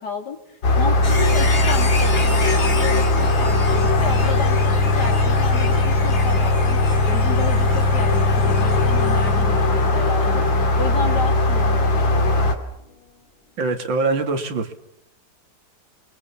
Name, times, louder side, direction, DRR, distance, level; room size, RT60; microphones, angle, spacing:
voice 1, 0.0-10.5 10.8-12.6, left 4 dB, 60° left, 4 dB, 3.4 m, -32 dB
sound 1, 0.6-12.5, left 2 dB, 85° left, 3.4 m, -19 dB
sound 2, 1.0-11.8 12.1-12.2, left 3 dB, 30° left, 2.0 m, -32 dB
voice 2, 13.6-14.8, right 3 dB, 85° right, 6 dB, 2.7 m, -23 dB
30.0 x 23.0 x 7.1 m, 0.78 s
omnidirectional pair, 2.0 m